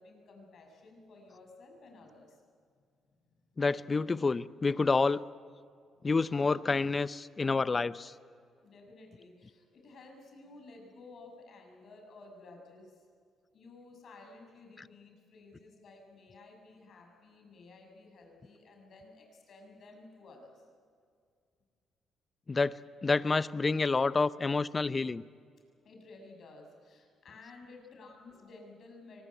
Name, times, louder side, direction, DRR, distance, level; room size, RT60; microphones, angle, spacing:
voice 1, 0.0-2.4 3.2-3.4 8.6-13.1 13.5-20.7 25.8-29.2, left 3 dB, 60° left, 3 dB, 7.0 m, -54 dB
voice 2, 3.6-5.2 6.0-8.1 22.5-22.8 23.0-25.2, left 4 dB, 30° left, 16 dB, 0.7 m, -28 dB
24.0 x 20.5 x 9.1 m, 2.2 s
cardioid pair, 90°, 0 cm